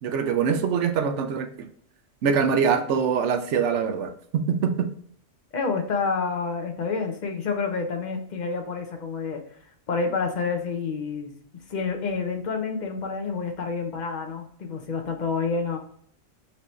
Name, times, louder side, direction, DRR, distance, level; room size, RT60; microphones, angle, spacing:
voice 1, 0.0-1.7 2.2-4.9, right 6 dB, 75° right, 7 dB, 0.9 m, -24 dB
voice 2, 5.5-9.4 9.9-11.3 11.7-15.8, left 4 dB, 45° left, 4 dB, 0.7 m, -28 dB
4.4 x 2.7 x 3.1 m, 0.63 s
omnidirectional pair, 1.3 m